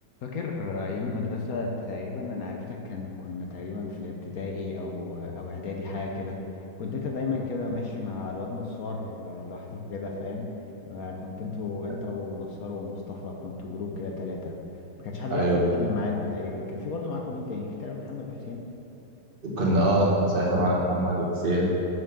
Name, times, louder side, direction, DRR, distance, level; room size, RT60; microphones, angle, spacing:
voice 1, 0.2-6.4 6.8-10.5 10.9-14.6 15.0-18.7, left 3 dB, 65° left, 0 dB, 0.9 m, -33 dB
voice 2, 15.3-15.7 19.4-21.7, right 1 dB, 35° right, -4 dB, 1.0 m, -23 dB
6.8 x 6.4 x 6.2 m, 2.9 s
omnidirectional pair, 2.4 m